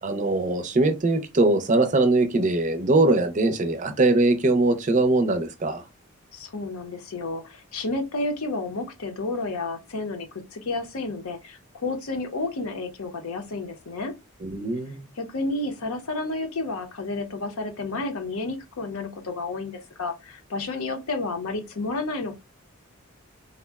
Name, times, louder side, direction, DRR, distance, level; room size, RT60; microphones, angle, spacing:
voice 1, 0.0-5.8 14.4-15.1, right 2 dB, 35° right, 0.4 m, -21 dB
voice 2, 6.3-14.1 15.2-22.3, left 2 dB, 80° left, 0.7 m, -31 dB
3.6 x 2.0 x 2.2 m
head